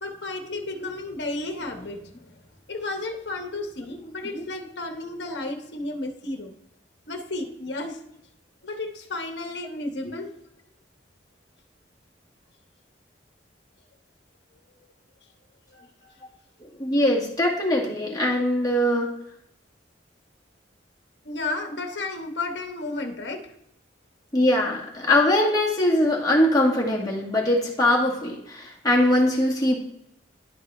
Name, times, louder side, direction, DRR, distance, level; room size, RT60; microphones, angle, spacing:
voice 1, 0.0-2.4 2.7-6.5 7.1-8.0 8.6-10.3 15.7-15.8 21.2-23.4, left 2 dB, 70° left, 4 dB, 1.2 m, -33 dB
voice 2, 16.6-19.1 24.3-29.8, left 1 dB, 20° left, -3 dB, 1.7 m, -22 dB
11.0 x 4.4 x 3.1 m, 0.78 s
head